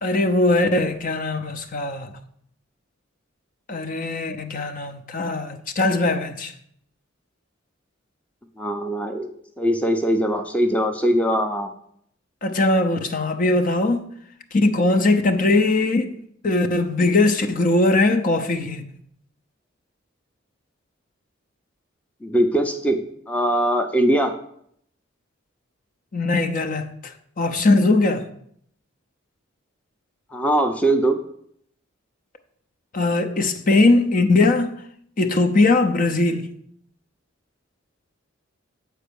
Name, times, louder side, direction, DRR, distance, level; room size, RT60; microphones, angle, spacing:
voice 1, 0.0-2.1 3.7-6.5 12.4-14.1 14.5-16.1 16.4-18.9 26.1-28.3 32.9-34.8 35.2-36.5, left 2 dB, 40° left, 0.7 m, -20 dB
voice 2, 8.6-9.3 9.6-11.7 22.2-23.0 23.3-24.3 30.3-31.2, right 1 dB, 5° left, 0.6 m, -21 dB
8.4 x 4.6 x 6.9 m
head